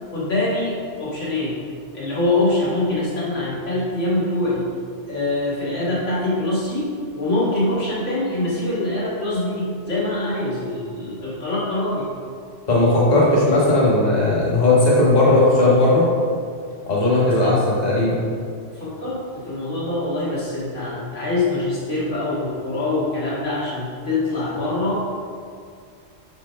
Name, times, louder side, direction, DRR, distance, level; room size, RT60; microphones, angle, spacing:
voice 1, 0.1-1.6 1.9-4.6 5.1-12.1 17.2-17.5 18.7-25.0, left 2 dB, 85° left, -9 dB, 2.3 m, -24 dB
voice 2, 12.7-16.1 16.9-18.2, left 2 dB, 35° left, -5 dB, 1.5 m, -17 dB
8.0 x 3.1 x 5.6 m, 2.2 s
omnidirectional pair, 1.2 m